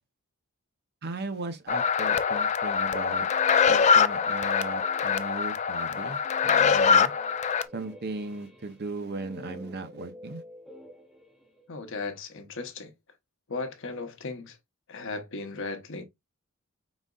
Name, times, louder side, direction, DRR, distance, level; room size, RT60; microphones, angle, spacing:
voice 1, 1.0-3.3 3.7-7.1 7.7-10.4, right 3 dB, 50° right, 0.7 m, -37 dB
sound 1, 1.7-7.6, left 6 dB, 30° left, 0.3 m, -23 dB
Guitar, 2.9-5.5 6.2-11.6, left 1 dB, ahead, 0.8 m, -47 dB
voice 2, 11.7-12.9 13.5-14.6 14.9-16.0, left 3 dB, 60° left, 0.9 m, -36 dB
5.0 x 4.0 x 2.3 m
head